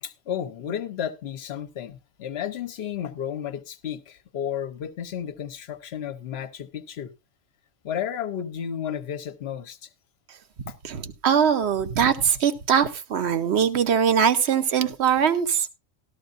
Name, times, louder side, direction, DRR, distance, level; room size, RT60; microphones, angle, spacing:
voice 1, 0.0-7.1 7.8-9.9 10.7-10.8, left 9 dB, 55° left, 1.0 m, -32 dB
voice 2, 10.8-15.7, right 7 dB, 60° right, 1.0 m, -22 dB
13.0 x 13.0 x 2.5 m
omnidirectional pair, 1.4 m